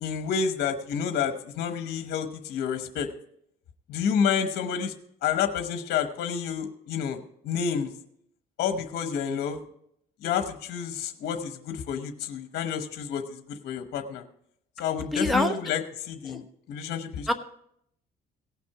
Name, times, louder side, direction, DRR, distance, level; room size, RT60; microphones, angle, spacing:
voice 1, 0.0-3.1 3.9-4.9 5.2-7.9 8.6-9.6 10.2-14.2 14.8-16.4 16.7-17.3, left 7 dB, 70° left, 7 dB, 1.0 m, -29 dB
voice 2, 15.1-15.5 16.3-16.4 17.3-17.4, left 1 dB, ahead, 3 dB, 1.2 m, -24 dB
17.5 x 6.0 x 4.8 m, 0.71 s
cardioid pair, 110°, 17 cm